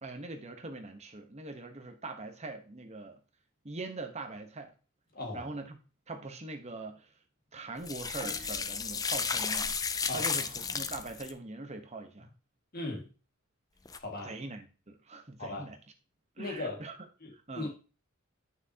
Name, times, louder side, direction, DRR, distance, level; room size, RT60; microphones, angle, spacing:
voice 1, 0.0-3.2 3.6-4.7 5.3-5.8 6.1-7.1 7.5-12.3 14.2-15.8 16.4-16.9 17.3-17.7, right 2 dB, 30° right, 1.1 m, -42 dB
voice 2, 5.1-5.5 10.1-10.3 12.2-12.3 12.7-13.1 14.0-14.3 15.4-15.7 16.4-16.8 17.2-17.7, left 2 dB, 40° left, 2.0 m, -38 dB
sound 1, 7.8-11.3 13.9-14.0, left 5 dB, 15° left, 0.4 m, -33 dB
9.7 x 6.1 x 2.9 m
head